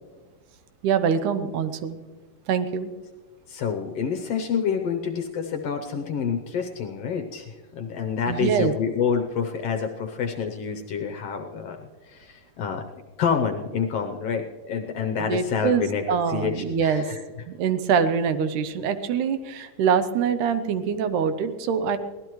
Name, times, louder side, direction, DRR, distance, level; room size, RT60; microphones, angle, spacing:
voice 1, 0.8-2.0 2.5-2.9 8.3-8.7 15.2-17.1 17.5-22.0, right 7 dB, 80° right, 11 dB, 2.3 m, -24 dB
voice 2, 3.5-17.2, left 6 dB, 70° left, 5 dB, 1.6 m, -28 dB
23.5 x 17.0 x 3.1 m, 1.4 s
omnidirectional pair, 3.5 m